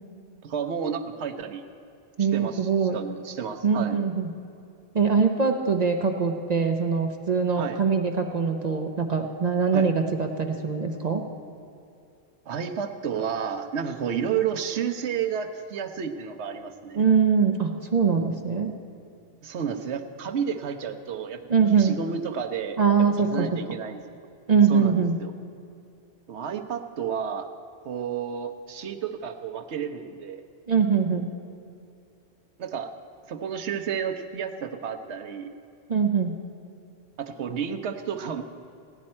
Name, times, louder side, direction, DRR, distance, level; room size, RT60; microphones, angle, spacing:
voice 1, 0.4-1.6 2.2-4.0 7.5-7.8 9.7-9.9 12.5-17.1 19.4-21.4 21.7-22.8 23.2-24.0 24.7-25.3 26.3-27.5 27.8-30.4 32.6-32.9 33.3-35.5 37.2-38.4, right 7 dB, 85° right, 6 dB, 1.0 m, -31 dB
voice 2, 2.2-3.0 3.6-4.3 4.9-11.2 16.9-18.7 21.5-22.0 22.8-23.6 24.5-25.2 30.7-31.3 35.9-36.3, right 6 dB, 45° right, 4 dB, 0.7 m, -23 dB
16.5 x 10.5 x 4.3 m, 2.5 s
omnidirectional pair, 1.1 m